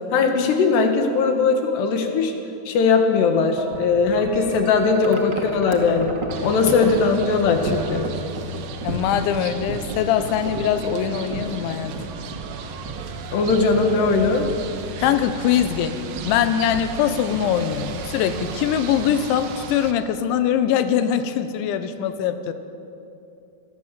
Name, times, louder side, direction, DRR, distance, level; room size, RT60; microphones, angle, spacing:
voice 1, 0.1-2.3 2.7-6.2 6.4-8.1 13.3-14.5, left 4 dB, 70° left, 5 dB, 3.8 m, -19 dB
Wind chime, 3.6-19.8, right 3 dB, 35° right, 1.8 m, -35 dB
sound 1, 6.3-19.9, right 4 dB, 65° right, 2.9 m, -35 dB
voice 2, 8.8-11.9 15.0-16.0 16.2-22.5, left 9 dB, 85° left, 9 dB, 3.4 m, -22 dB
26.0 x 21.0 x 7.6 m, 2.7 s
omnidirectional pair, 5.2 m